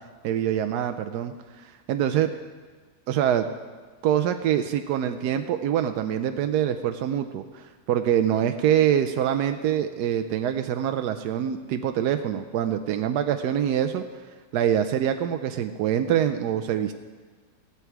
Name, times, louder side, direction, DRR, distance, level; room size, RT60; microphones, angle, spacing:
voice 1, 0.2-2.3 3.1-3.5 4.0-14.0 14.5-16.9, right 10 dB, 90° right, 8 dB, 1.2 m, -25 dB
15.0 x 11.5 x 4.6 m, 1.5 s
omnidirectional pair, 1.7 m